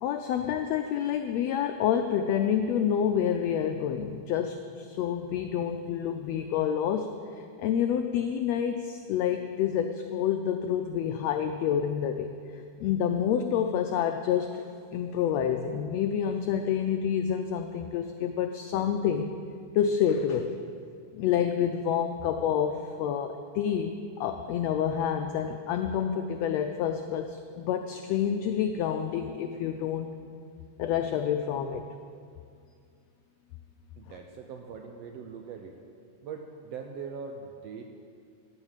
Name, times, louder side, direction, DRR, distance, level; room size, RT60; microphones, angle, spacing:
voice 1, 0.0-7.1 7.6-12.3 12.8-14.6 14.9-19.3 19.7-20.6 21.1-30.1 30.8-31.9, left 8 dB, 90° left, 6 dB, 1.4 m, -28 dB
voice 2, 34.0-35.7 36.2-37.8, right 6 dB, 75° right, 3 dB, 1.5 m, -41 dB
13.5 x 5.9 x 8.9 m, 2.3 s
omnidirectional pair, 3.6 m